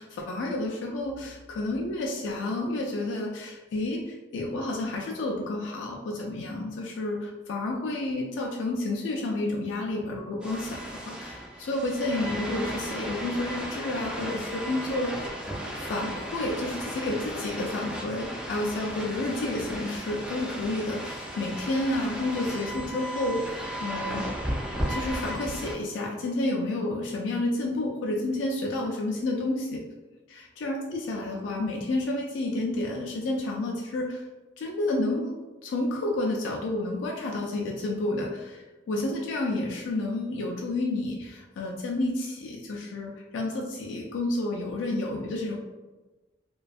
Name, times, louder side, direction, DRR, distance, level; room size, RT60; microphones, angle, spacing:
voice 1, 0.0-10.8 11.1-15.3 15.8-24.3 24.9-29.8 30.3-34.3 34.6-35.3 35.6-45.6, left 2 dB, 75° left, -1 dB, 0.3 m, -30 dB
sound 1, 10.4-25.8, equal, 5° right, 0.3 m, -35 dB
2.5 x 2.2 x 2.3 m, 1.2 s
head